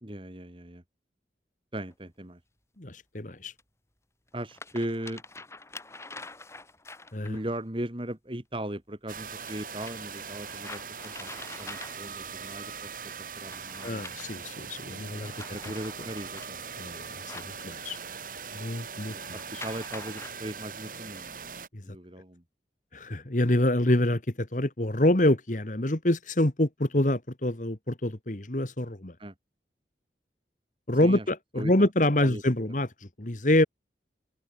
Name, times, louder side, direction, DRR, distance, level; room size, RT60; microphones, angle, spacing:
voice 1, 0.0-0.8 1.7-2.4 4.3-5.2 7.3-11.3 11.6-12.9 13.2-14.0 15.2-16.6 19.0-21.3 21.8-22.4 29.2-29.3 31.0-31.2 31.6-31.9 32.2-32.4, right 1 dB, 30° right, 2.2 m, -38 dB
sound 1, 1.9-2.0 3.6-3.7 4.3-7.5 9.4-12.3 13.3-14.5 15.0-18.2 19.2-20.3, left 3 dB, 15° left, 4.4 m, -46 dB
voice 2, 2.8-3.5 7.1-7.4 13.8-15.3 15.6-15.7 16.8-18.0 18.5-19.6 21.7-21.8 22.9-29.1 30.9-33.6, left 1 dB, 45° left, 1.8 m, -26 dB
sound 2, 9.1-21.7, right 6 dB, 50° right, 6.4 m, -41 dB
head